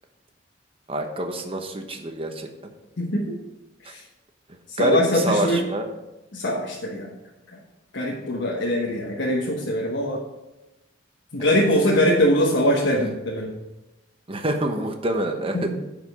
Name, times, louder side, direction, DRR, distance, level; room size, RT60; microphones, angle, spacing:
voice 1, 0.9-2.5 4.8-5.9 11.4-11.6 14.3-15.7, right 1 dB, 30° right, 5 dB, 1.0 m, -26 dB
voice 2, 3.0-3.4 3.8-4.0 4.7-5.6 6.3-7.1 7.9-10.2 11.3-13.5 15.5-15.8, equal, 75° left, -3 dB, 1.2 m, -22 dB
10.5 x 5.2 x 5.4 m, 1.0 s
head